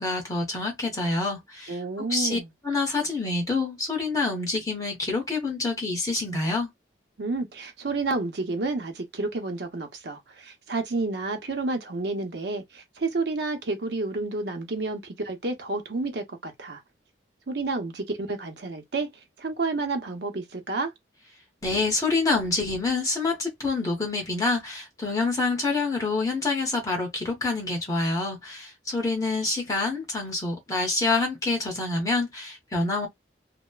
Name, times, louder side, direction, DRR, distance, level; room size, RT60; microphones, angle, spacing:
voice 1, 0.0-6.7 21.6-33.1, left 3 dB, 20° left, 0.8 m, -27 dB
voice 2, 1.7-2.5 7.2-16.8 17.5-19.1 19.4-20.9, right 3 dB, 65° right, 0.6 m, -30 dB
2.9 x 2.0 x 2.2 m
head